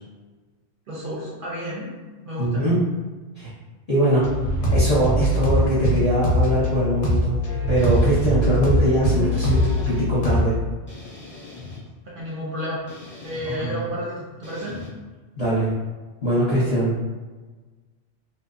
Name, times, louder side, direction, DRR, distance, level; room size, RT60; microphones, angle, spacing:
voice 1, 0.9-1.9 2.2-2.7 12.1-12.8 13.2-14.8, equal, 60° right, -5 dB, 0.6 m, -31 dB
voice 2, 2.4-2.8 3.4-3.5 3.9-4.3 4.7-7.4 7.7-10.5 13.6-13.8 15.4-15.7 16.2-16.9, right 1 dB, 40° left, -10 dB, 0.7 m, -22 dB
sound 1, 4.2-10.6, equal, 90° left, 0.9 m, -22 dB
sound 2, 7.8-8.3 9.3-10.0 10.9-11.8 12.9-13.6 14.4-14.9, left 3 dB, 20° left, 0.3 m, -40 dB
2.8 x 2.0 x 2.4 m, 1.3 s
omnidirectional pair, 1.2 m